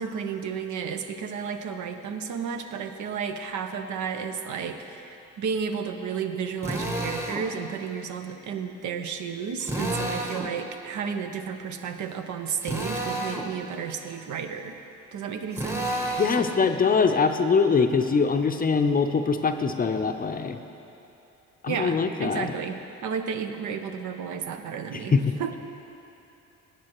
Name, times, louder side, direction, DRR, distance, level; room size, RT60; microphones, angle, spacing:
voice 1, 0.0-14.8 15.1-15.9 21.7-25.6, right 6 dB, 75° right, 7 dB, 0.7 m, -32 dB
Drill, 6.6-7.5 9.6-10.5 12.6-13.5 15.5-16.5, right 1 dB, 10° right, 1.0 m, -30 dB
voice 2, 16.2-20.6 21.6-22.5 24.9-25.2, left 5 dB, 30° left, 6 dB, 0.5 m, -23 dB
16.0 x 8.6 x 3.0 m, 2.9 s
cardioid pair, 90°, 30 cm